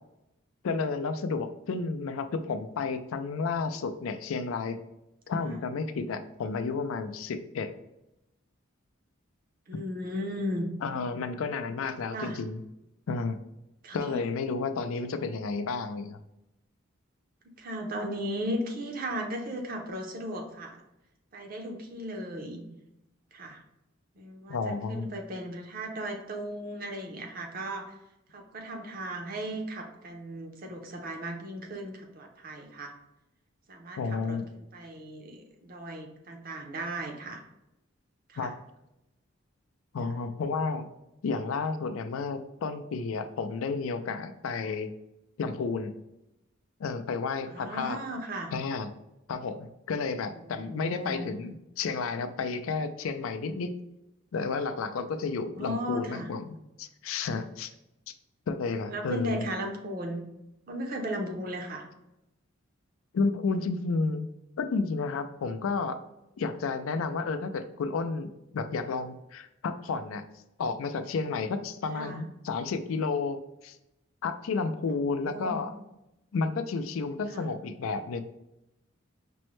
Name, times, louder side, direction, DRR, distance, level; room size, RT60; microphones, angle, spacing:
voice 1, 0.6-4.8 5.3-7.7 10.8-12.6 13.1-13.4 13.9-16.2 24.5-25.1 34.0-34.5 38.4-38.5 39.9-40.9 41.2-44.9 45.4-46.0 46.8-48.0 48.5-48.9 49.3-53.7 54.3-57.7 58.5-59.5 63.1-64.3 64.6-66.0 66.4-70.2 70.6-73.4 73.6-73.8 74.2-75.7 76.3-78.2, left 4 dB, 75° left, 9 dB, 0.4 m, -31 dB
voice 2, 9.7-10.7 12.1-12.4 13.8-14.2 17.6-20.8 21.3-22.6 23.3-23.6 24.2-28.0 28.3-32.9 33.7-37.4 38.3-38.5 47.5-48.5 50.3-51.3 55.6-56.3 58.7-60.2 60.7-61.9 71.9-72.2 74.9-75.6 77.3-77.5, equal, 45° right, 3 dB, 0.6 m, -36 dB
5.2 x 2.1 x 3.0 m, 0.89 s
head